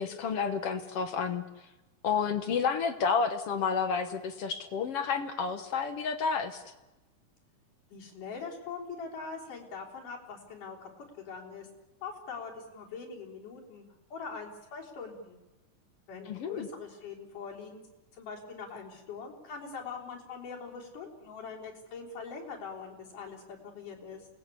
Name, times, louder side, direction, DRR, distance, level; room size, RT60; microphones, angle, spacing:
voice 1, 0.0-1.7 2.0-6.6 16.3-16.7, left 6 dB, 60° left, 9 dB, 1.9 m, -30 dB
voice 2, 7.9-11.7 12.0-13.8 14.1-15.4 16.1-17.8 18.1-24.3, left 5 dB, 75° left, -3 dB, 5.1 m, -42 dB
29.0 x 19.0 x 8.5 m, 1.1 s
omnidirectional pair, 3.6 m